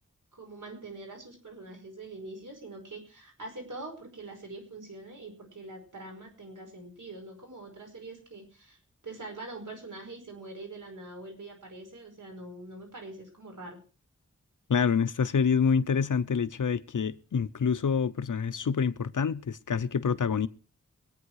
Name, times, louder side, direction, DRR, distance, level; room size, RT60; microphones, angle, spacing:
voice 1, 0.3-13.8, right 2 dB, 85° right, 5.1 m, -44 dB
voice 2, 14.7-20.5, left 6 dB, 90° left, 0.8 m, -27 dB
23.0 x 9.2 x 4.8 m
wide cardioid pair, 60°, 30 cm